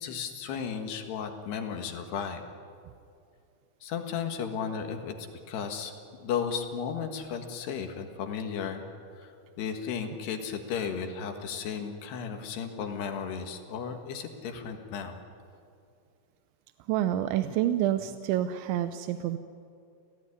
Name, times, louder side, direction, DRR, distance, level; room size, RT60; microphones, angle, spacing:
voice 1, 0.0-2.4 3.8-5.1 5.5-5.9 6.2-8.8 9.2-9.3 9.6-15.2, left 7 dB, 70° left, 5 dB, 3.6 m, -34 dB
voice 2, 16.9-19.4, right 12 dB, 90° right, 10 dB, 3.2 m, -28 dB
29.5 x 17.0 x 10.0 m, 2.4 s
omnidirectional pair, 5.2 m